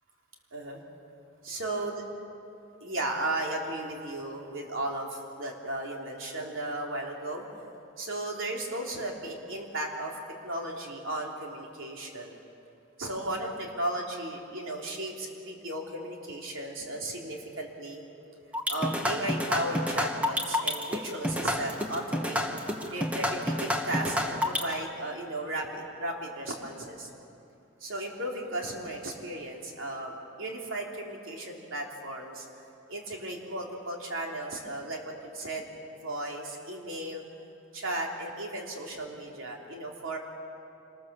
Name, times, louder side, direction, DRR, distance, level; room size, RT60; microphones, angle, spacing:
voice 1, 1.4-2.0 2.8-7.5 8.0-10.2 10.4-12.4 13.0-18.1 18.7-22.4 22.9-27.1 27.8-35.6 36.0-37.2 37.7-40.2, right 1 dB, 75° right, 0 dB, 3.4 m, -35 dB
sound 1, 18.5-24.7, left 1 dB, 5° right, 1.4 m, -29 dB
26.0 x 20.5 x 7.0 m, 2.6 s
head